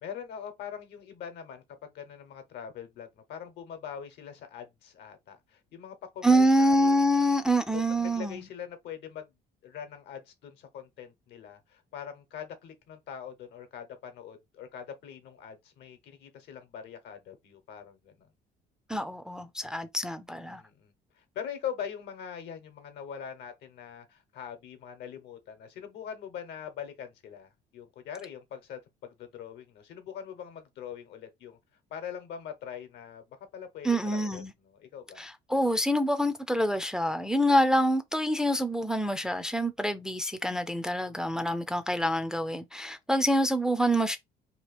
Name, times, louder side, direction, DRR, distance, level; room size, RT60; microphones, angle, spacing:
voice 1, 0.0-7.0 7.7-9.3 9.6-18.3 20.5-31.6 31.9-33.2 33.5-35.3, left 8 dB, 80° left, 0.9 m, -42 dB
voice 2, 6.2-8.4 18.9-20.6 33.8-34.5 35.2-44.2, equal, 5° right, 0.3 m, -26 dB
2.9 x 2.5 x 3.2 m
cardioid pair, 110°, 17 cm